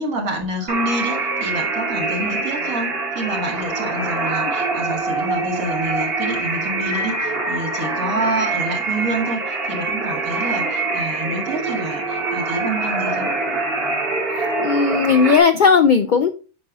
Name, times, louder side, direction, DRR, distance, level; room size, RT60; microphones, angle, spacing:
voice 1, 0.0-13.3, right 1 dB, 80° right, 1 dB, 2.1 m, -27 dB
sound 1, 0.7-15.4, right 3 dB, 45° right, 1.4 m, -24 dB
voice 2, 14.6-16.3, left 5 dB, 80° left, 9 dB, 0.4 m, -16 dB
8.6 x 6.0 x 2.5 m, 0.35 s
omnidirectional pair, 1.4 m